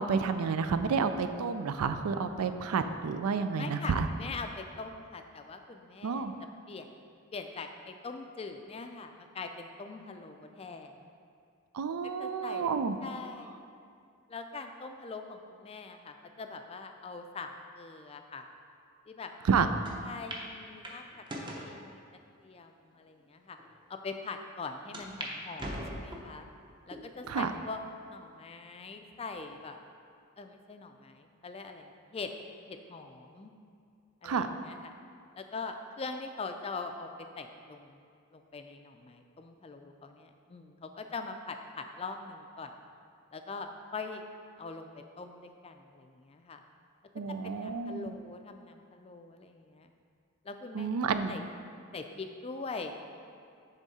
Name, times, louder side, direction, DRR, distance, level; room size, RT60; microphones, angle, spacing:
voice 1, 0.0-4.1 6.0-6.3 11.7-13.0 19.5-19.7 27.3-27.5 34.2-34.5 47.2-48.1 50.7-51.4, right 5 dB, 90° right, 9 dB, 0.4 m, -30 dB
voice 2, 3.6-6.3 6.7-6.9 7.3-10.9 12.0-12.7 13.0-13.5 14.3-18.5 19.1-19.5 20.0-21.2 21.5-22.0 22.4-23.6 23.9-26.5 26.9-27.8 28.1-29.8 30.4-32.3 32.7-33.5 34.2-34.9 35.3-38.0 38.3-42.8 43.3-44.3 44.6-46.6 47.4-49.9 50.4-50.9 51.3-51.4 51.9-53.0, left 4 dB, 25° left, 6 dB, 0.4 m, -42 dB
sound 1, 19.8-19.9 20.3-20.4 20.8-21.7 22.4-22.5 23.2-23.3 23.6-23.7 24.9-25.3 25.6-26.4 26.9-27.3 27.9-28.0 29.1-29.5, equal, 20° right, 0.7 m, -40 dB
9.9 x 3.6 x 4.2 m, 2.4 s
head